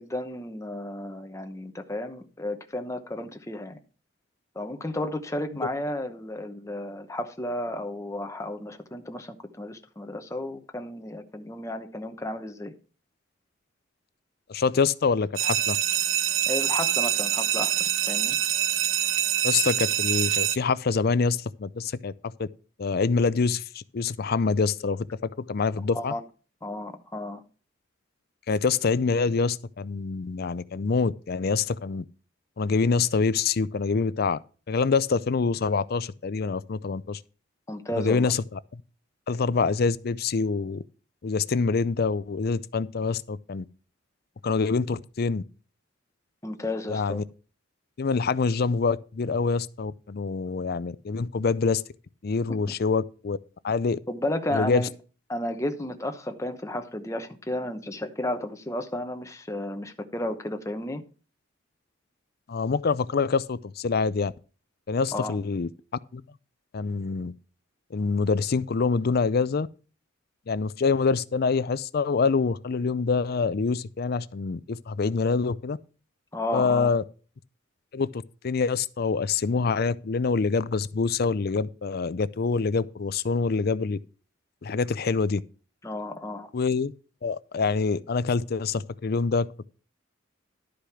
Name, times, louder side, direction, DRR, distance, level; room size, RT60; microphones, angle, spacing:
voice 1, 0.0-3.8 4.5-12.7 16.5-18.4 25.9-26.2 26.6-27.4 37.7-38.3 46.4-47.2 52.5-52.7 54.1-54.9 55.3-61.0 65.1-65.4 76.3-76.9 85.8-86.5, left 1 dB, 15° left, 0.9 m, -33 dB
voice 2, 14.5-15.8 19.4-22.5 22.8-26.1 28.5-32.0 32.6-34.4 34.7-37.2 37.9-38.8 39.3-40.8 41.2-43.6 44.4-45.4 46.9-47.2 48.0-51.8 52.2-53.4 53.6-54.0 54.5-54.9 62.5-64.3 64.9-65.7 66.1-66.2 66.7-67.3 67.9-69.7 70.5-75.8 76.5-77.0 77.9-84.0 84.6-85.4 86.5-86.9 87.2-89.5, left 4 dB, 50° left, 0.5 m, -26 dB
sound 1, 15.4-20.6, right 11 dB, 85° right, 0.6 m, -25 dB
11.5 x 5.1 x 5.9 m
head